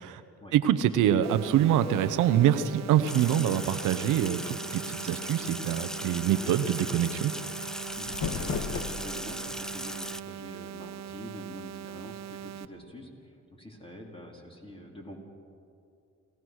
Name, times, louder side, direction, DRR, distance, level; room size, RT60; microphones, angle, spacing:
voice 1, 0.5-7.3, right 10 dB, 85° right, 11 dB, 0.9 m, -25 dB
sound 1, 1.2-12.6, right 9 dB, 65° right, 0.8 m, -41 dB
Sink (filling or washing), 3.1-10.2, equal, ahead, 0.6 m, -38 dB
sound 2, 7.8-9.4, left 6 dB, 60° left, 2.0 m, -34 dB
voice 2, 8.0-15.2, equal, 20° left, 0 dB, 4.4 m, -46 dB
27.5 x 17.0 x 6.4 m, 2.6 s
cardioid pair, 90°, 30 cm